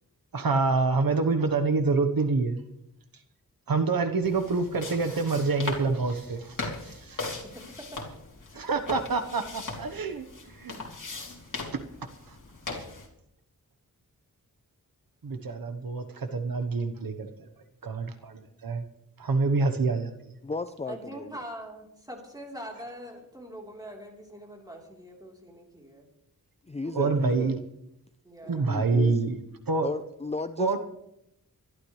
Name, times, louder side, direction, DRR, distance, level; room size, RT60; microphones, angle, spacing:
voice 1, 0.3-2.6 3.7-6.6 6.8-7.3 8.5-10.3 10.6-10.7 11.7-11.8 15.2-17.3 17.8-18.8 19.2-20.1 26.9-27.6 28.5-29.4 29.7-29.9 30.6-30.8, right 3 dB, 75° right, 8 dB, 1.2 m, -26 dB
sound 1, 4.2-13.1, left 3 dB, 60° left, 3.2 m, -39 dB
voice 2, 7.5-8.0 8.5-8.7 20.9-26.1 28.2-28.8, right 1 dB, 10° right, -1 dB, 3.7 m, -43 dB
voice 3, 20.4-21.3 26.7-27.5 28.4-29.2 29.8-30.8, left 3 dB, 20° left, 10 dB, 0.5 m, -34 dB
23.5 x 12.5 x 3.2 m, 0.82 s
wide cardioid pair, 105°, 35 cm